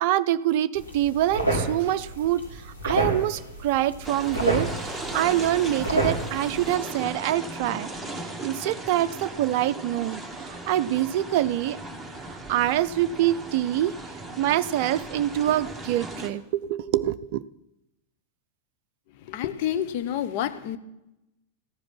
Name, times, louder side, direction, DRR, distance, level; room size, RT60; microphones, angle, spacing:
voice 1, 0.0-7.9 8.4-11.8 12.3-13.9 14.4-17.4, right 13 dB, 50° right, 13 dB, 0.4 m, -25 dB
sound 1, 0.7-6.7, right 1 dB, 85° left, 3.3 m, -30 dB
sound 2, 4.0-16.3, right 2 dB, ahead, 1.6 m, -37 dB
voice 2, 19.3-20.8, left 10 dB, 50° left, 10 dB, 0.9 m, -28 dB
14.5 x 5.1 x 9.4 m, 0.91 s
figure-of-eight pair, 90°, 0 cm